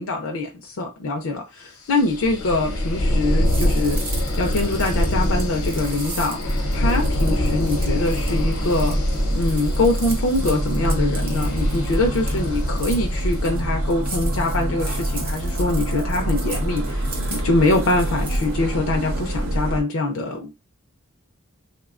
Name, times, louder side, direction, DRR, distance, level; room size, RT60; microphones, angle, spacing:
voice 1, 0.0-4.0 4.4-6.4 6.7-9.0 9.3-20.5, left 2 dB, 75° left, 0.4 m, -24 dB
sound 1, 1.9-13.6, left 1 dB, 90° left, 0.8 m, -25 dB
sound 2, 3.4-19.7, right 3 dB, 40° right, 0.8 m, -39 dB
sound 3, 6.4-19.8, equal, 85° right, 0.8 m, -25 dB
3.3 x 2.2 x 2.4 m
head